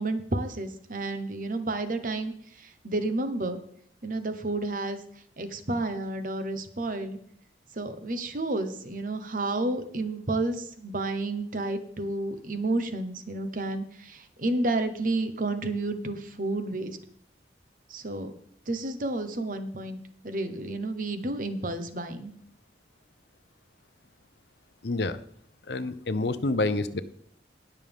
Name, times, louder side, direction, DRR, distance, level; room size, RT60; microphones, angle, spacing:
voice 1, 0.0-2.3 2.6-3.6 4.0-5.0 5.4-7.2 7.7-17.0 17.9-18.3 18.7-22.3, right 2 dB, 50° right, 9 dB, 1.2 m, -31 dB
voice 2, 24.8-25.2 25.7-27.0, left 2 dB, 65° left, 12 dB, 0.7 m, -28 dB
19.5 x 7.1 x 3.6 m, 0.64 s
head